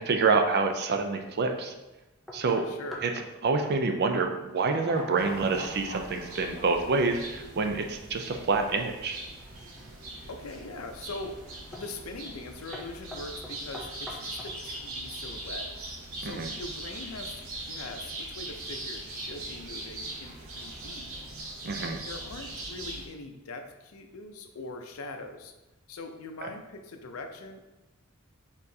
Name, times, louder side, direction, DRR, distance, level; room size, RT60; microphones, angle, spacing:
voice 1, 0.0-1.7 2.3-2.6 3.0-3.1 3.4-9.2 16.2-16.5 21.6-22.0 26.4-26.5, right 4 dB, 50° right, 5 dB, 0.5 m, -27 dB
sound 1, 2.3-3.2 3.6-3.8 4.1-4.3 4.6-5.3 5.5-5.9 9.3-9.9 10.5-10.9 11.7-12.0 12.3-12.5 12.7-14.6, left 1 dB, ahead, 0.5 m, -44 dB
voice 2, 2.5-3.1 10.3-15.7 16.2-21.2 22.0-25.5 25.9-27.7, left 2 dB, 85° left, 5 dB, 0.5 m, -42 dB
sound 2, 4.6-8.0 8.3-8.4, left 1 dB, 50° left, 0.8 m, -43 dB
sound 3, 5.2-23.1, right 2 dB, 70° right, 0.9 m, -41 dB
4.6 x 3.7 x 2.7 m, 1.0 s
head